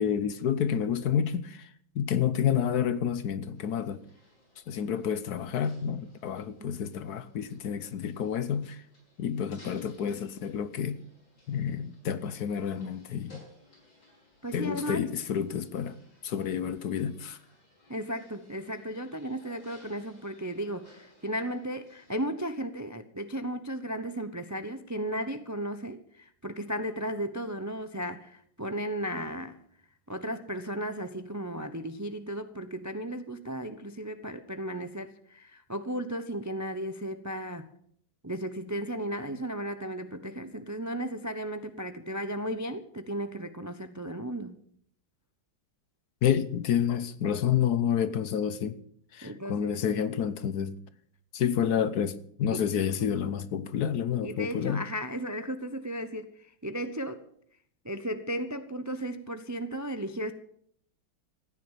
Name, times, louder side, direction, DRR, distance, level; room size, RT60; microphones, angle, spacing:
voice 1, 0.0-1.7 1.9-4.0 4.7-8.8 9.2-11.0 11.5-13.4 14.5-16.0 16.2-17.4 46.2-48.8 49.1-50.8 51.3-54.9, left 8 dB, 65° left, 1.2 m, -29 dB
sound 1, 3.5-22.3, left 1 dB, 85° left, 8.3 m, -60 dB
voice 2, 14.4-15.0 17.9-29.6 30.1-37.7 38.2-44.6 49.2-49.8 52.5-52.6 53.0-53.1 54.2-57.2 57.8-60.3, right 1 dB, 30° right, 0.3 m, -35 dB
15.0 x 9.7 x 9.0 m
omnidirectional pair, 2.0 m